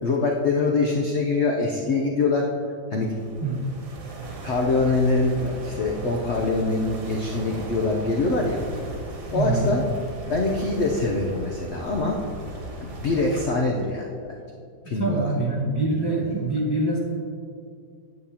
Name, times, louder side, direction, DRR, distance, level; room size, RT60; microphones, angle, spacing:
voice 1, 0.0-2.5 2.9-3.1 4.4-8.6 9.3-9.8 10.3-12.2 12.8-14.3 14.9-15.3 15.9-16.0, left 3 dB, 70° left, -1 dB, 0.6 m, -24 dB
sound 1, 3.0-13.5, right 2 dB, 80° right, 1.9 m, -37 dB
voice 2, 9.3-9.7 14.8-17.0, right 2 dB, 20° right, -4 dB, 0.8 m, -24 dB
9.2 x 8.3 x 2.8 m, 2.4 s
omnidirectional pair, 2.0 m